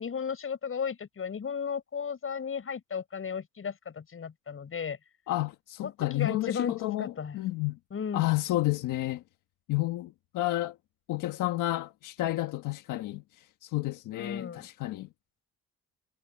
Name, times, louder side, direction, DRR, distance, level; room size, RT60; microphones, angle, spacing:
voice 1, 0.0-5.0 5.8-6.7 7.0-7.4 7.9-8.4 14.1-14.7, left 6 dB, 45° left, 6.6 m, -35 dB
voice 2, 5.3-7.8 8.1-9.2 9.7-10.7 11.1-13.2 13.6-15.1, left 17 dB, 90° left, 1.4 m, -30 dB
cardioid pair, 90°, 30 cm